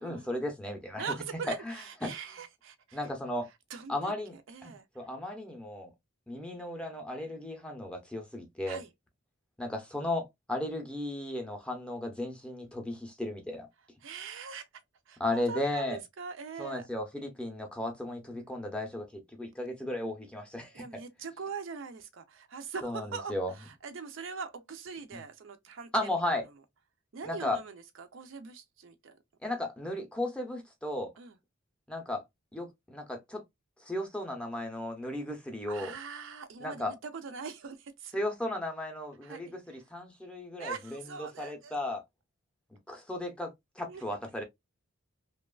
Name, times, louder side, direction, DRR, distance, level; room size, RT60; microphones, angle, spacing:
voice 1, 0.0-1.1 1.7-1.8 2.0-2.1 2.9-3.5 3.9-4.4 4.6-5.9 6.3-8.8 9.6-13.7 15.2-16.0 16.6-20.8 22.8-23.5 25.9-26.4 27.2-27.6 29.4-31.1 31.9-32.2 32.5-33.4 33.8-35.9 36.6-37.0 38.1-42.0 42.9-44.4, left 1 dB, 5° left, 0.6 m, -35 dB
voice 2, 1.0-3.0 3.7-4.9 8.7-8.9 14.0-14.7 15.1-16.9 19.8-19.9 20.7-25.9 27.1-29.2 31.2-31.4 35.6-38.2 39.2-39.8 40.6-41.7 43.9-44.0, right 5 dB, 60° right, 0.4 m, -42 dB
2.9 x 2.2 x 2.3 m
head